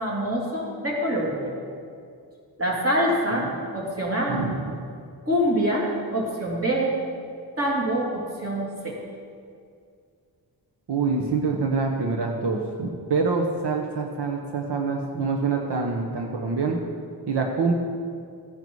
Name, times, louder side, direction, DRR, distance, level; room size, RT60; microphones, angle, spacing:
voice 1, 0.0-1.5 2.6-4.4 5.2-6.9 7.6-8.9, equal, 35° right, -4 dB, 3.3 m, -25 dB
voice 2, 4.3-4.8 10.9-16.8 17.3-17.7, right 4 dB, 90° right, 2 dB, 1.2 m, -26 dB
15.5 x 9.5 x 4.8 m, 2.3 s
wide cardioid pair, 100°, 39 cm